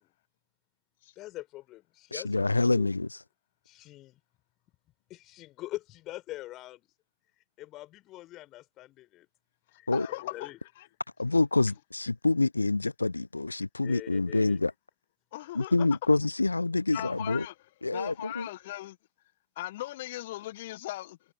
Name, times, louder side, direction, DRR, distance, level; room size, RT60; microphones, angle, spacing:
voice 1, 1.2-2.9 3.7-4.2 5.1-6.9 7.6-9.3 9.7-10.6 13.8-14.6, left 16 dB, 35° left, 5.8 m, -44 dB
voice 2, 2.1-3.2 9.9-10.1 11.2-14.7 15.5-17.5 17.8-18.5, left 3 dB, 80° left, 0.8 m, -27 dB
voice 3, 9.9-10.9 15.3-15.7 16.9-17.5 17.9-19.0 19.6-21.2, left 16 dB, 55° left, 1.4 m, -38 dB
figure-of-eight pair, 90°, 0 cm